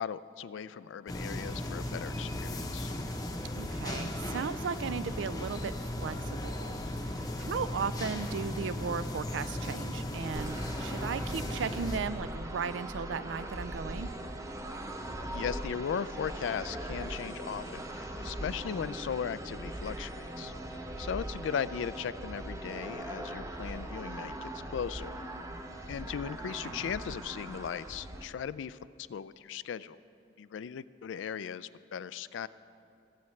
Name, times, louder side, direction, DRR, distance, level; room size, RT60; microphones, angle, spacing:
voice 1, 0.0-2.9 15.3-25.2 25.9-30.0 30.4-32.5, left 7 dB, 90° left, 17 dB, 0.3 m, -38 dB
sound 1, 1.1-12.0, left 1 dB, 20° left, 0.7 m, -36 dB
voice 2, 3.6-6.7 7.0-14.1 26.6-26.9, right 6 dB, 85° right, 15 dB, 0.4 m, -36 dB
sound 2, 10.3-28.3, right 1 dB, 15° right, 0.5 m, -40 dB
23.0 x 8.5 x 3.2 m, 2.6 s
head